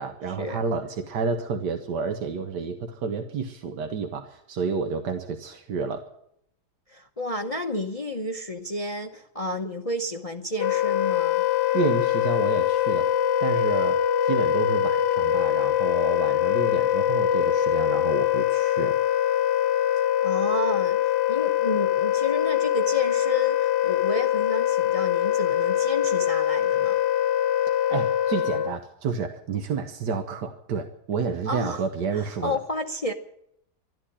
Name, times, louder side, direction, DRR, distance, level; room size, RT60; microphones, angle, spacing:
voice 1, 0.0-6.1 11.7-13.1 13.4-19.0 27.9-32.6, right 5 dB, 85° right, 6 dB, 1.7 m, -30 dB
voice 2, 6.9-11.4 20.2-27.0 31.5-31.8 32.1-33.1, left 1 dB, 30° left, 5 dB, 0.7 m, -31 dB
Wind instrument woodwind instrument, 10.6-28.8, left 11 dB, 80° left, 1.5 m, -23 dB
13.0 x 11.0 x 10.0 m, 0.75 s
omnidirectional pair, 1.8 m